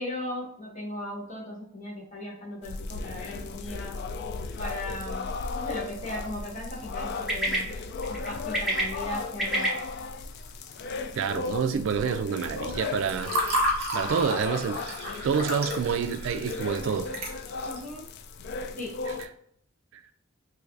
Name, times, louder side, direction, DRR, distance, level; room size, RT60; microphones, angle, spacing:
voice 1, 0.0-4.0 4.6-7.7 8.1-9.8 17.6-18.1 18.8-19.0, left 1 dB, 40° left, 1.4 m, -37 dB
sound 1, 2.6-19.3, left 4 dB, 55° left, 0.3 m, -36 dB
sound 2, 4.4-16.1, right 1 dB, ahead, 1.1 m, -37 dB
voice 2, 11.2-13.3 13.9-14.8 15.2-17.1 19.1-19.3, right 6 dB, 70° right, 0.3 m, -28 dB
Water / Fill (with liquid), 12.7-17.8, equal, 50° right, 1.0 m, -31 dB
3.3 x 3.1 x 2.5 m
head